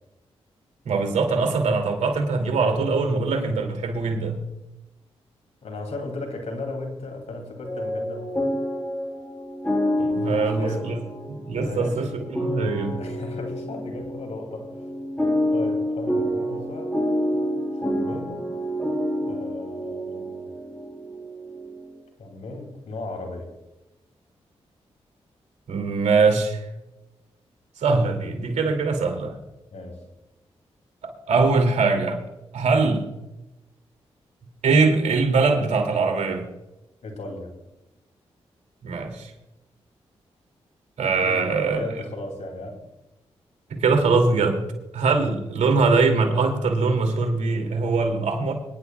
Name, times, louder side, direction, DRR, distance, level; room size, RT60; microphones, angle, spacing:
voice 1, 0.8-4.4 10.0-11.0 11.4-13.0 25.7-26.6 27.8-29.4 31.0-32.2 32.5-33.1 34.6-36.5 38.8-39.3 41.0-41.8 43.7-44.6 44.9-48.5, right 4 dB, 75° right, 3 dB, 2.5 m, -22 dB
voice 2, 5.6-8.5 10.2-10.9 11.6-12.0 12.9-14.9 15.5-17.0 17.8-18.6 19.2-20.6 22.2-23.5 29.7-30.0 37.0-37.5 41.2-41.5 41.8-42.8, left 2 dB, 75° left, 3 dB, 2.6 m, -35 dB
sound 1, 7.6-21.9, equal, 10° left, 5.6 m, -28 dB
24.5 x 10.5 x 2.3 m, 0.98 s
supercardioid pair, 50°, 12 cm